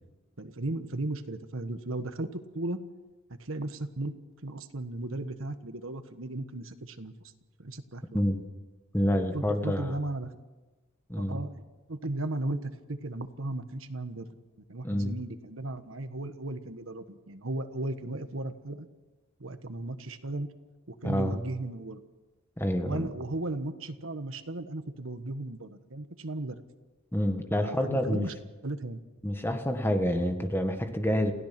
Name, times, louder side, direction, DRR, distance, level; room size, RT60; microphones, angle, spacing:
voice 1, 0.4-2.8 3.4-4.1 4.4-7.1 7.6-8.2 9.1-10.3 11.1-11.6 11.9-14.4 14.7-18.9 19.4-20.5 20.9-22.0 22.8-26.6 27.6-28.3 28.6-29.0, right 2 dB, 70° right, 9 dB, 1.4 m, -36 dB
voice 2, 8.9-10.0 11.1-11.4 14.8-15.2 21.0-21.4 22.6-23.1 27.1-28.3 29.2-31.3, equal, 10° left, 6 dB, 1.7 m, -28 dB
28.0 x 16.5 x 6.1 m, 1.2 s
head